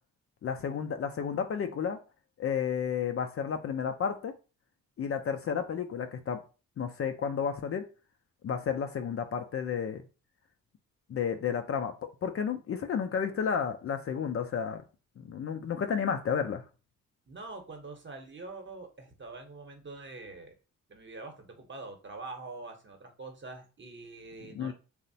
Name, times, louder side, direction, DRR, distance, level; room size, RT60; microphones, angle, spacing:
voice 1, 0.4-2.0 2.4-4.3 5.0-6.4 6.8-7.8 8.4-10.0 11.1-11.9 12.2-14.8 15.2-16.6 24.5-24.7, left 7 dB, 45° left, 0.4 m, -32 dB
voice 2, 17.3-20.5 20.9-24.7, right 3 dB, 35° right, 0.9 m, -44 dB
2.9 x 2.1 x 2.7 m
supercardioid pair, 55°, 34 cm